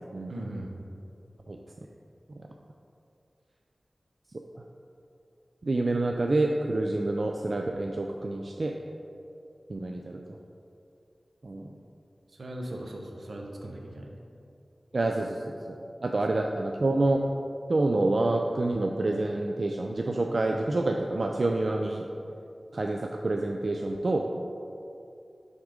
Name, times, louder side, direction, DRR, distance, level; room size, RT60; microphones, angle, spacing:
voice 1, 0.3-0.8 12.3-14.2, right 1 dB, 75° right, 0 dB, 0.7 m, -39 dB
voice 2, 5.6-8.7 9.7-10.2 11.4-11.8 14.9-15.6 16.0-17.2 17.7-22.1 22.7-24.2, right 2 dB, 60° right, 2 dB, 0.3 m, -27 dB
6.2 x 3.6 x 4.9 m, 2.7 s
wide cardioid pair, 70°, 0 cm